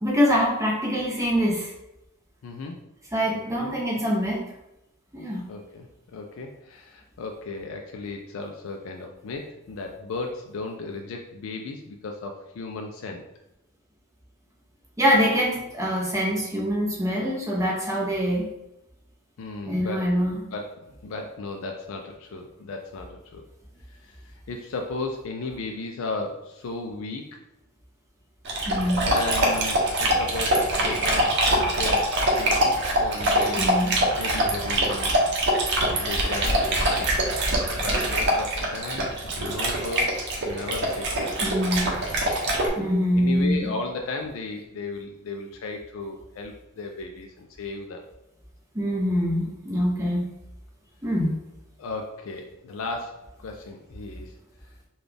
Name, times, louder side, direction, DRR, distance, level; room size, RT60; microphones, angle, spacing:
voice 1, 0.0-1.7 3.1-4.4 5.1-5.4 15.0-18.5 19.7-20.3 28.7-29.0 33.6-33.9 41.4-41.8 42.8-43.7 48.7-50.3 51.0-51.3, equal, 15° right, -4 dB, 0.7 m, -24 dB
voice 2, 2.4-2.8 3.6-3.7 5.5-13.2 19.4-23.4 23.9-27.4 28.9-33.7 34.2-35.5 35.8-41.7 42.7-48.1 51.8-54.3, left 3 dB, 65° left, 3 dB, 0.4 m, -35 dB
Dog, 28.5-42.7, right 1 dB, 55° right, 0.8 m, -24 dB
4.0 x 2.3 x 3.3 m, 0.90 s
head